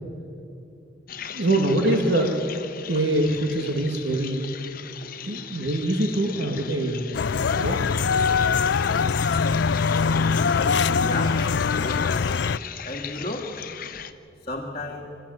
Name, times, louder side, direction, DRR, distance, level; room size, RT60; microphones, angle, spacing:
sound 1, 1.1-14.1, left 8 dB, 55° left, 1.0 m, -39 dB
voice 1, 1.3-2.4 2.9-4.5 5.2-7.0 7.6-7.8, right 1 dB, 90° right, 3 dB, 1.9 m, -24 dB
sound 2, 7.1-12.6, left 5 dB, 75° left, 0.5 m, -22 dB
voice 2, 11.0-11.4 11.8-12.3 12.8-13.5 14.5-15.1, left 2 dB, 35° left, -1 dB, 1.7 m, -32 dB
26.5 x 13.5 x 9.3 m, 2.6 s
head